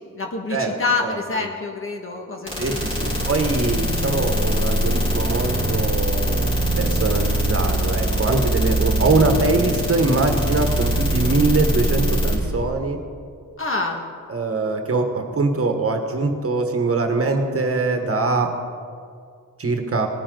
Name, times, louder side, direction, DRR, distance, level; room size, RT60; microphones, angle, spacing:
voice 1, 0.1-3.3 13.6-14.0, left 3 dB, 40° left, 1 dB, 1.7 m, -27 dB
sound 1, 2.5-12.4, right 1 dB, 15° left, 3.7 m, -22 dB
voice 2, 2.6-6.5 6.8-13.0 14.3-18.5 19.6-20.1, right 3 dB, 45° right, 5 dB, 1.3 m, -22 dB
19.0 x 9.8 x 3.9 m, 2.2 s
wide cardioid pair, 115°, 32 cm